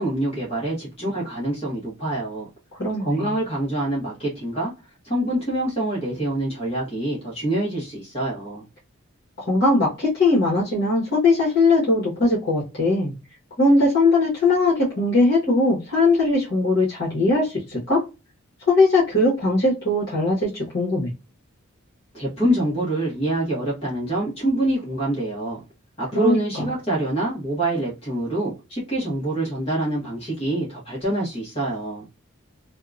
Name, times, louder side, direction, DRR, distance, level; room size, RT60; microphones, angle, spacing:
voice 1, 0.0-2.5 3.0-4.7 5.0-8.6 22.1-25.6 26.0-32.1, right 1 dB, 30° left, 1.0 m, -25 dB
voice 2, 2.8-3.3 9.4-13.1 13.6-18.0 18.7-21.1 26.1-26.7, left 2 dB, 50° left, 1.2 m, -20 dB
2.8 x 2.3 x 2.4 m
head